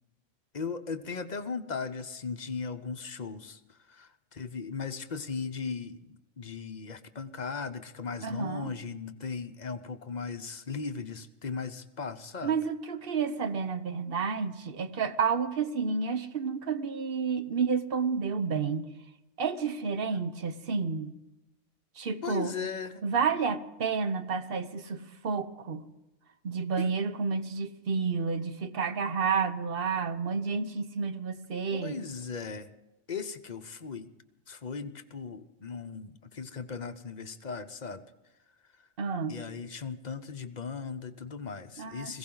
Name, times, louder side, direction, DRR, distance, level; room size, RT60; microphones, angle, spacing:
voice 1, 0.5-12.5 22.2-23.0 26.8-26.9 31.7-32.7 33.1-34.1 34.5-38.0 39.3-42.2, left 5 dB, 40° left, 0.8 m, -37 dB
voice 2, 8.2-8.7 12.4-18.9 19.4-21.2 22.0-22.5 23.0-25.8 26.4-32.0 39.0-39.4 41.8-42.2, right 5 dB, 50° right, 1.1 m, -30 dB
21.0 x 16.0 x 3.9 m
omnidirectional pair, 1.3 m